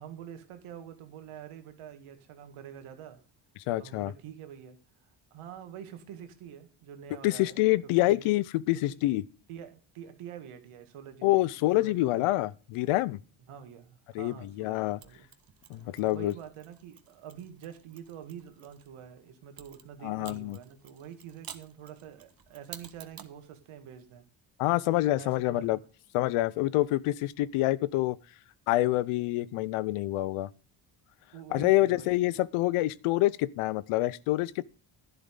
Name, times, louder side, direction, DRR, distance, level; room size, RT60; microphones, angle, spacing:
voice 1, 0.0-3.2 3.8-4.8 5.3-7.6 8.0-8.3 8.9-9.0 9.5-12.5 13.5-15.3 15.8-24.2 25.2-25.8 26.3-26.4 31.3-32.4, right 9 dB, 80° right, 2.2 m, -46 dB
voice 2, 3.7-4.1 7.2-9.2 11.2-13.2 14.1-15.0 15.7-16.3 20.0-20.6 24.6-25.8 26.1-28.2 28.7-30.5 31.5-34.6, left 17 dB, 85° left, 0.7 m, -27 dB
Mechanisms, 15.0-18.9 19.6-23.4, right 8 dB, 45° right, 1.5 m, -51 dB
11.0 x 10.5 x 3.8 m
supercardioid pair, 70°, 50 cm